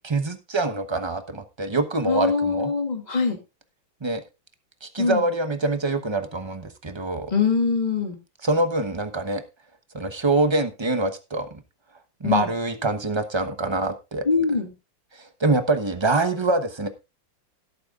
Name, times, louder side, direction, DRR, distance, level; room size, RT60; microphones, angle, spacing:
voice 1, 0.0-2.7 4.0-4.2 4.8-7.3 8.4-9.4 9.9-11.5 12.2-14.2 15.1-16.9, right 2 dB, 20° right, 9 dB, 0.7 m, -25 dB
voice 2, 2.1-3.4 5.0-5.2 7.3-8.2 12.2-12.5 14.2-14.7, left 5 dB, 20° left, 4 dB, 2.2 m, -23 dB
17.0 x 8.7 x 2.5 m, 0.26 s
omnidirectional pair, 2.1 m